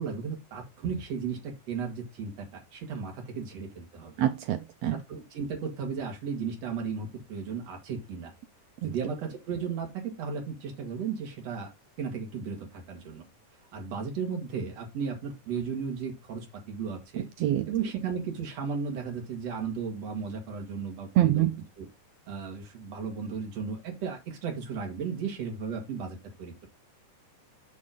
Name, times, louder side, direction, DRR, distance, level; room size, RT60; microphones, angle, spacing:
voice 1, 0.0-4.1 4.9-8.3 8.8-11.7 12.0-13.3 13.7-17.3 17.7-21.5 21.8-21.9 22.3-26.7, right 6 dB, 55° right, 3.3 m, -35 dB
voice 2, 4.2-5.0 8.8-8.9 17.4-17.7 21.2-21.5, right 13 dB, 85° right, 1.4 m, -25 dB
7.4 x 6.4 x 3.8 m
omnidirectional pair, 3.6 m